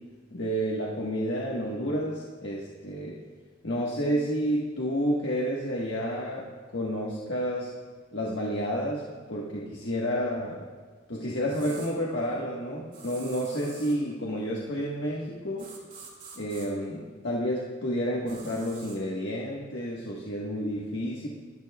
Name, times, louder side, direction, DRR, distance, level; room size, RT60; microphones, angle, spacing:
voice 1, 0.3-3.2 3.6-6.5 6.7-7.7 8.1-10.6 11.1-15.7 16.4-21.3, equal, 65° left, -4 dB, 1.4 m, -30 dB
sound 1, 11.5-11.9 12.9-14.0 15.6-16.7 18.3-19.0, right 5 dB, 45° right, 2.5 m, -47 dB
20.5 x 13.0 x 2.3 m, 1.5 s
head